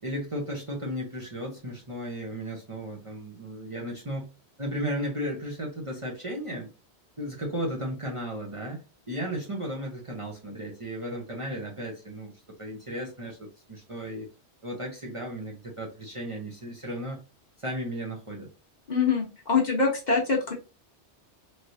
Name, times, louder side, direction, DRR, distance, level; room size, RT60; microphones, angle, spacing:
voice 1, 0.0-4.3 4.6-6.7 7.2-12.3 12.6-14.3 14.6-17.2 17.6-18.5, equal, 30° right, -2 dB, 0.8 m, -35 dB
voice 2, 18.9-20.5, left 4 dB, 45° left, -1 dB, 0.9 m, -24 dB
3.2 x 2.9 x 2.6 m, 0.31 s
omnidirectional pair, 1.2 m